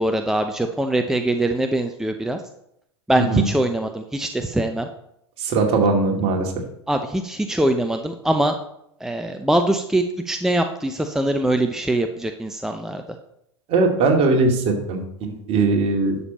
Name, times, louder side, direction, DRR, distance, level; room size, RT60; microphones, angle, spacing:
voice 1, 0.0-2.4 3.1-4.9 6.9-8.5 9.0-13.0, right 1 dB, 5° right, 6 dB, 0.7 m, -22 dB
voice 2, 3.2-3.5 5.4-6.5 13.7-16.2, right 3 dB, 40° right, 2 dB, 2.4 m, -20 dB
11.0 x 7.1 x 4.3 m, 0.76 s
figure-of-eight pair, 90°, 15 cm